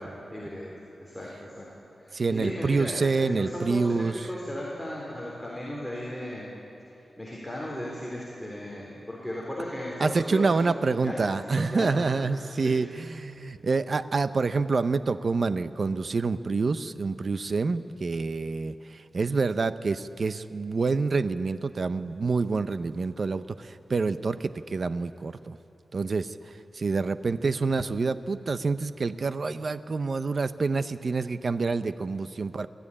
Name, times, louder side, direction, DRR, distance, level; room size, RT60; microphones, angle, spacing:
voice 1, 0.0-1.7 2.0-6.5 6.9-12.2 12.6-12.8, equal, 5° left, -4 dB, 3.8 m, -36 dB
voice 2, 2.1-4.3 10.0-25.6 25.9-32.7, right 4 dB, 55° right, 12 dB, 0.7 m, -27 dB
21.5 x 14.0 x 9.9 m, 2.8 s
wide cardioid pair, 100°, 0 cm